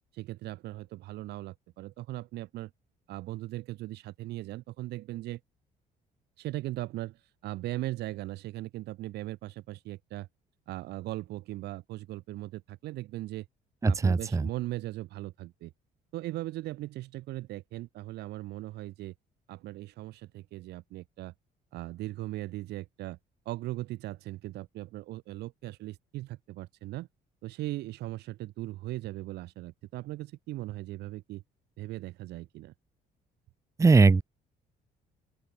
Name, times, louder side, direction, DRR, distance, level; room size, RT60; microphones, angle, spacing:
voice 1, 0.1-2.7 3.1-5.4 6.4-10.3 10.7-13.4 13.8-15.7 16.1-19.1 19.5-21.3 21.7-23.2 23.4-27.1 27.4-31.4 31.8-32.7, right 17 dB, 75° right, 1.3 m, -38 dB
voice 2, 13.8-14.5 33.8-34.2, right 4 dB, 20° right, 0.9 m, -20 dB
open air
cardioid pair, 110°, 17 cm